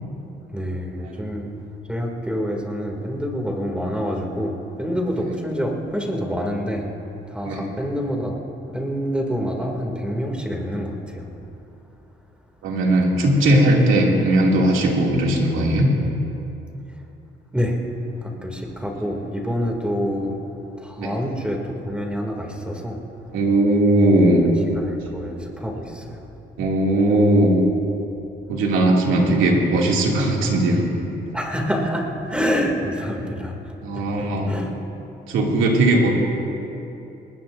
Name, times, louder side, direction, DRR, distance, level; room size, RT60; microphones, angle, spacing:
voice 1, 0.5-1.5 1.9-6.8 7.3-8.4 8.7-11.2 17.5-17.7 18.4-20.4 20.8-21.6 21.8-23.0 24.9-26.2 31.3-33.7 34.2-34.7, equal, 5° right, 0 dB, 2.6 m, -26 dB
voice 2, 12.6-15.9 21.0-21.1 23.3-24.4 26.6-27.6 28.5-30.8 33.8-34.5 35.3-36.1, right 1 dB, 90° right, -2 dB, 2.6 m, -18 dB
21.0 x 19.0 x 2.7 m, 2.9 s
cardioid pair, 90°, 20 cm